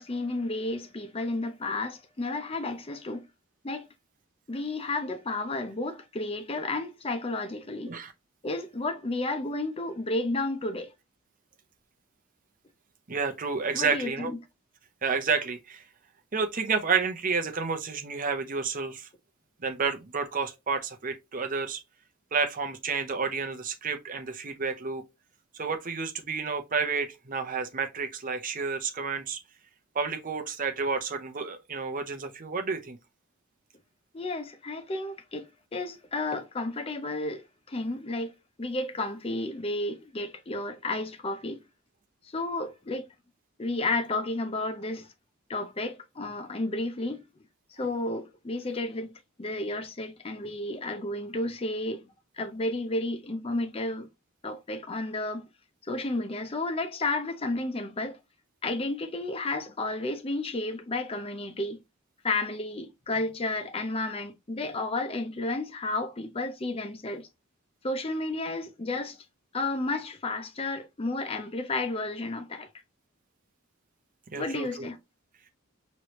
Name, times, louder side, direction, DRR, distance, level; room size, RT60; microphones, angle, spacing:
voice 1, 0.0-3.3 3.6-3.9 4.5-8.0 8.4-10.9 13.7-14.4 34.1-38.3 38.6-41.6 42.3-43.1 43.6-45.1 45.5-47.3 47.7-52.1 52.3-54.1 54.4-55.5 55.8-58.2 58.6-61.8 62.2-67.3 67.8-69.2 69.5-72.7 74.4-75.0, left 2 dB, 25° left, 0.5 m, -32 dB
voice 2, 13.1-14.3 15.0-15.8 16.3-19.1 19.6-21.8 22.3-25.0 25.6-29.4 29.9-33.0 74.3-74.9, right 5 dB, 40° right, 0.7 m, -30 dB
4.6 x 3.1 x 3.0 m
head